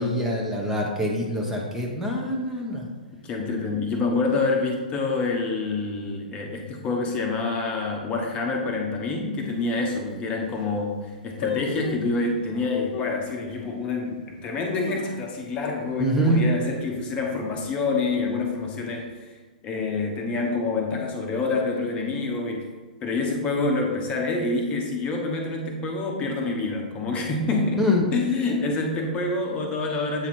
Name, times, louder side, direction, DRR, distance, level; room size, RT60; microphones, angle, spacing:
voice 1, 0.0-2.8 16.0-16.4 27.8-28.1, equal, 5° right, -2 dB, 0.8 m, -24 dB
voice 2, 3.2-10.9 11.2-19.1 19.6-22.7 23.0-27.8 28.1-30.3, left 3 dB, 25° left, 1 dB, 0.9 m, -27 dB
sound 1, 9.4-9.5 10.1-10.2 10.4-10.8 11.4-12.2 12.9-13.3 13.8-13.9 14.5-15.6 15.9-16.0 16.3-16.7 17.1-17.5 18.1-18.8 19.1-19.2, left 8 dB, 50° left, 0.4 m, -35 dB
7.8 x 2.8 x 4.3 m, 1.4 s
figure-of-eight pair, 115°, 5 cm